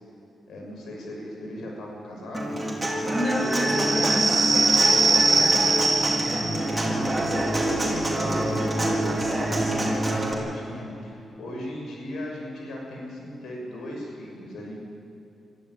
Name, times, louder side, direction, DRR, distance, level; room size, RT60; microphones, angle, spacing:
voice 1, 0.5-2.7 5.1-5.9 6.5-14.8, left 1 dB, 80° left, -1 dB, 6.3 m, -38 dB
Human voice / Acoustic guitar, 2.3-10.3, right 1 dB, 15° right, 4.6 m, -26 dB
voice 2, 3.1-4.5 4.8-5.7, left 1 dB, 40° left, 2 dB, 4.0 m, -30 dB
sound 1, 3.4-10.7, right 3 dB, 35° right, 2.5 m, -25 dB
23.0 x 13.5 x 9.7 m, 2.7 s
cardioid pair, 90°, 0 cm